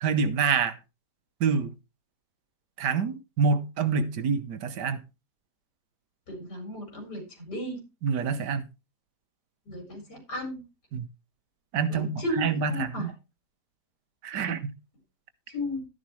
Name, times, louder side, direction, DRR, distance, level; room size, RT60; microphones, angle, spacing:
voice 1, 0.0-0.7 1.4-1.7 2.8-5.0 8.0-8.6 10.9-11.1 11.7-13.1 14.2-14.7, right 5 dB, 85° right, 1.7 m, -26 dB
voice 2, 6.3-7.8 9.7-10.6 11.9-13.1 15.5-15.8, left 1 dB, 75° left, 5.3 m, -34 dB
12.5 x 10.5 x 3.2 m
omnidirectional pair, 1.8 m